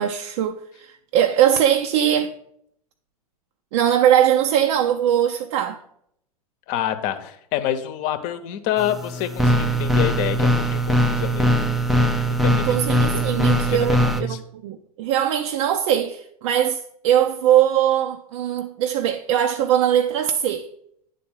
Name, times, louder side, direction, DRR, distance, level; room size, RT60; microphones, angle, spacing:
voice 1, 0.0-2.3 3.7-5.8 12.5-20.7, right 10 dB, 55° right, 0.6 m, -21 dB
voice 2, 6.7-11.7 12.0-12.8 13.1-14.4, left 11 dB, 45° left, 0.9 m, -28 dB
sound 1, 8.8-14.2, equal, ahead, 0.5 m, -20 dB
9.6 x 4.1 x 5.4 m
hypercardioid pair, 100°, 19 cm